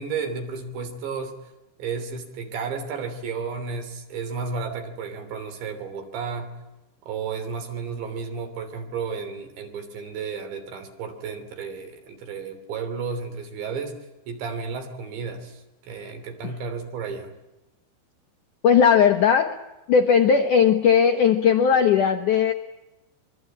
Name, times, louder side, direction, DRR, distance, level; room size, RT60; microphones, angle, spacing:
voice 1, 0.0-1.4 1.8-6.5 7.1-14.0 14.3-17.3, right 5 dB, 75° right, 6 dB, 5.3 m, -32 dB
voice 2, 18.6-19.6 19.9-22.5, left 7 dB, 75° left, 5 dB, 1.9 m, -18 dB
26.0 x 23.5 x 8.7 m, 0.98 s
omnidirectional pair, 5.2 m